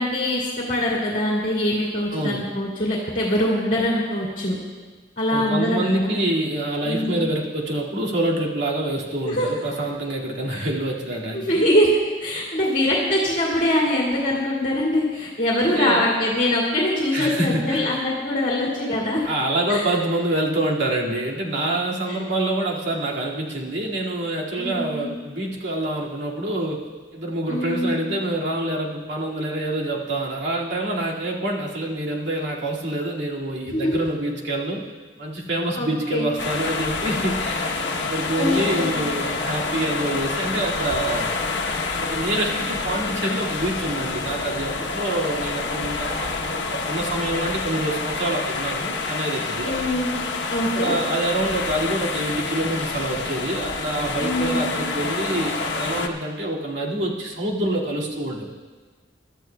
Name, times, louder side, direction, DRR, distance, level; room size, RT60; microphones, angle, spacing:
voice 1, 0.0-4.6 5.2-6.1 6.8-7.3 9.2-9.5 11.3-11.9 12.2-19.2 19.7-19.9 22.1-22.2 24.6-25.1 27.5-28.0 33.7-34.0 35.8-36.3 38.3-39.1 49.7-50.1 50.5-51.0 54.2-54.7, left 1 dB, 45° left, -5 dB, 2.1 m, -23 dB
voice 2, 2.1-2.5 5.3-11.6 15.6-16.0 17.1-18.0 19.2-34.9 35.2-41.3 41.9-49.8 50.7-58.5, right 1 dB, 80° right, -3 dB, 2.2 m, -26 dB
sound 1, 36.4-56.1, left 4 dB, 80° left, 1.0 m, -28 dB
23.5 x 12.5 x 2.3 m, 1.4 s
head